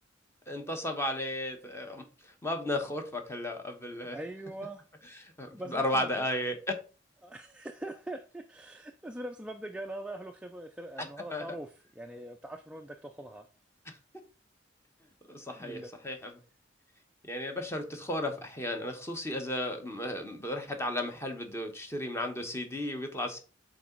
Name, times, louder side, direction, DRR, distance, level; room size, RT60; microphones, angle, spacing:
voice 1, 0.5-4.2 5.1-6.5 11.3-11.4 13.9-14.0 15.3-16.3 17.2-23.4, left 1 dB, 15° left, 1.0 m, -34 dB
voice 2, 4.0-5.2 5.5-6.3 7.2-13.5 15.6-15.9, right 1 dB, 5° right, 0.4 m, -42 dB
6.2 x 3.9 x 4.5 m
head